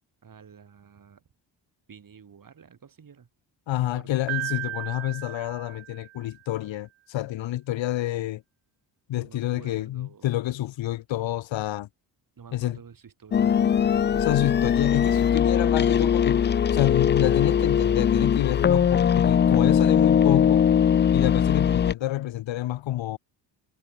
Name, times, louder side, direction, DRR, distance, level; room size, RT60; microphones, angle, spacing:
voice 1, 0.2-1.2 1.9-3.3 3.7-4.1 9.1-10.3 10.6-10.7 12.4-13.5, right 7 dB, 45° right, 7.3 m, -49 dB
voice 2, 3.7-8.4 9.1-11.9 12.5-12.8 14.2-16.4 16.7-20.6 21.1-23.2, left 14 dB, 80° left, 2.2 m, -28 dB
Piano, 4.3-6.4, right 16 dB, 85° right, 1.2 m, -35 dB
sound 1, 13.3-21.9, left 8 dB, 25° left, 0.4 m, -21 dB
cardioid pair, 90°, 45 cm